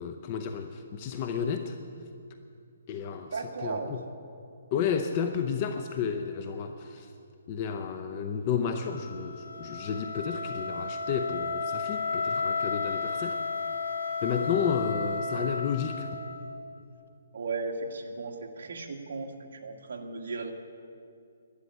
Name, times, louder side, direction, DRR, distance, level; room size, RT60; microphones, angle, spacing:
voice 1, 0.0-1.8 2.9-3.3 3.6-4.0 4.7-7.1 7.5-13.4 14.2-16.1, left 7 dB, 25° left, 6 dB, 0.6 m, -31 dB
voice 2, 3.3-3.9 17.3-20.5, right 4 dB, 60° right, 1 dB, 1.9 m, -36 dB
Wind instrument woodwind instrument, 8.7-16.7, left 4 dB, 85° left, 1.9 m, -33 dB
12.0 x 11.0 x 9.5 m, 2.5 s
hypercardioid pair, 170°, 0 cm